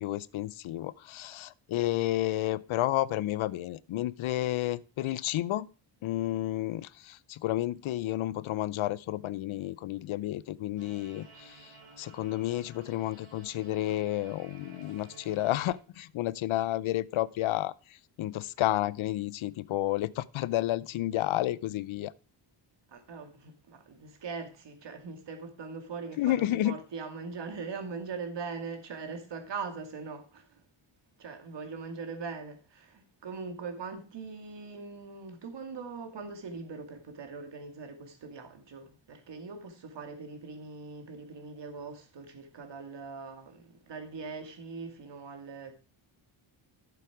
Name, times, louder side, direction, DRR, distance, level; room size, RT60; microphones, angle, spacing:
voice 1, 0.0-5.7 6.0-11.7 12.0-17.7 18.2-22.1 26.2-26.8, left 14 dB, 75° left, 0.6 m, -31 dB
sound 1, 10.8-15.7, right 4 dB, 80° right, 2.9 m, -54 dB
voice 2, 22.9-30.6 31.2-45.7, right 4 dB, 60° right, 2.4 m, -41 dB
11.5 x 7.1 x 4.8 m
cardioid pair, 105°, 49 cm